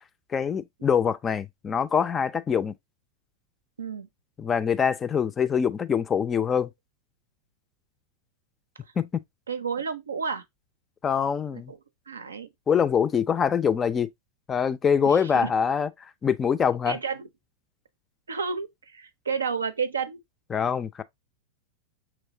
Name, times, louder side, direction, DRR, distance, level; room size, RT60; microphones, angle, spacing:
voice 1, 0.3-2.7 4.4-6.7 9.0-9.2 11.0-11.7 12.7-14.1 14.5-17.0 20.5-21.0, left 7 dB, 20° left, 0.4 m, -24 dB
voice 2, 3.8-4.1 9.5-10.4 11.5-11.8 12.1-12.5 15.1-15.5 16.9-17.3 18.3-20.2, right 5 dB, 70° right, 0.5 m, -31 dB
6.1 x 3.1 x 2.6 m
figure-of-eight pair, 90°, 0 cm